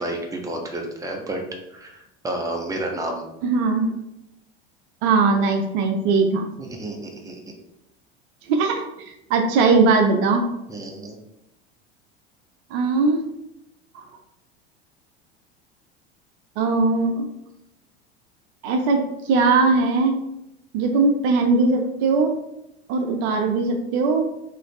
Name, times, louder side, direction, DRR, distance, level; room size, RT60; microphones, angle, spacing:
voice 1, 0.0-1.4 1.7-3.2 6.6-7.4 10.7-11.2, right 1 dB, 10° right, 1 dB, 0.8 m, -30 dB
voice 2, 3.4-3.9 5.0-6.5 8.5-10.4 12.7-13.2 16.6-17.3 18.6-19.0 19.3-20.2 20.7-22.3 22.9-24.2, right 4 dB, 55° right, 4 dB, 0.6 m, -20 dB
3.8 x 3.2 x 3.2 m, 0.87 s
hypercardioid pair, 75°, 32 cm